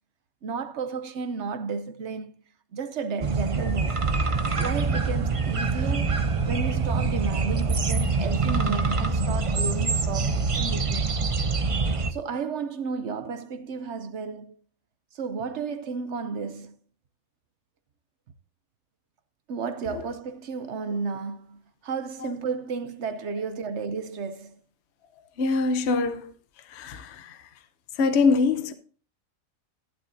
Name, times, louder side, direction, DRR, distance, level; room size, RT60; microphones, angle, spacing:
voice 1, 0.4-2.3 2.7-4.0 4.6-11.1 12.1-14.6 15.1-16.8 19.5-24.6, right 5 dB, 60° right, 1.0 m, -33 dB
sound 1, 3.2-12.1, right 4 dB, 35° right, 0.5 m, -25 dB
voice 2, 25.4-26.3 26.7-27.4 28.0-28.7, left 4 dB, 55° left, 1.0 m, -24 dB
12.5 x 11.0 x 2.7 m
omnidirectional pair, 1.4 m